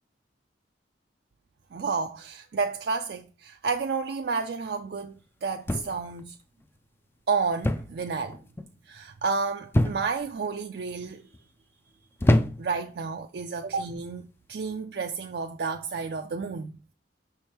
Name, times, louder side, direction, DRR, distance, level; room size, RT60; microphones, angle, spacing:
voice 1, 1.7-6.4 7.3-8.4 8.9-11.3 12.6-16.8, right 5 dB, 60° right, 0.4 m, -31 dB
sound 1, 5.7-6.2 7.6-8.0 8.3-8.7 9.7-10.3 11.0-11.4 12.2-12.9 13.8-14.1, left 1 dB, 15° left, 0.3 m, -25 dB
6.2 x 3.5 x 4.3 m
head